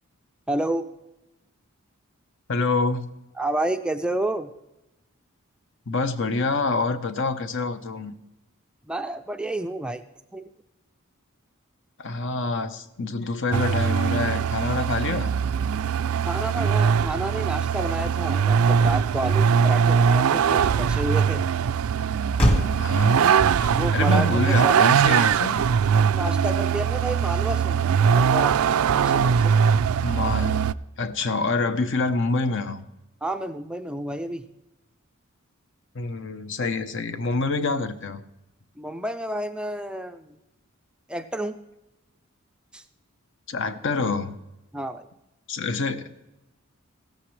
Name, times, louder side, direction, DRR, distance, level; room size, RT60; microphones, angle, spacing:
voice 1, 0.5-0.8 3.4-4.5 8.9-10.0 10.3-10.5 16.3-21.5 23.7-24.7 26.1-28.6 29.0-29.5 33.2-34.4 38.8-40.4 41.1-41.6 42.7-42.8 44.7-45.1, right 1 dB, 5° right, 7 dB, 0.4 m, -30 dB
voice 2, 2.5-3.0 5.9-8.1 12.0-15.4 22.8-25.6 30.0-30.6 31.0-32.8 35.9-38.2 43.5-44.3 45.5-46.1, left 3 dB, 60° left, 10 dB, 0.8 m, -26 dB
Vehicle, 13.5-30.7, right 7 dB, 75° right, 0.3 m, -21 dB
Motor vehicle (road), 22.3-26.9, equal, 25° left, 1.9 m, -31 dB
16.0 x 13.0 x 3.2 m, 0.93 s
head